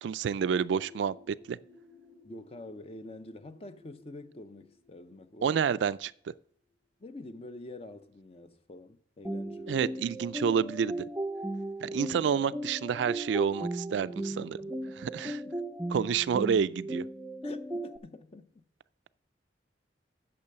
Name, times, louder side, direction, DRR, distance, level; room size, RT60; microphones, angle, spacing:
voice 1, 0.0-1.6 5.4-6.1 9.7-11.0 11.8-14.6 15.0-15.4 15.9-17.0, right 7 dB, 75° right, 0.3 m, -29 dB
sound 1, 0.7-6.3, left 3 dB, 10° left, 0.9 m, -57 dB
voice 2, 2.2-5.7 7.0-10.1 14.3-15.5 17.4-18.6, left 2 dB, 35° left, 0.6 m, -47 dB
sound 2, 9.2-18.0, right 1 dB, 10° right, 0.5 m, -36 dB
8.7 x 6.8 x 6.5 m
head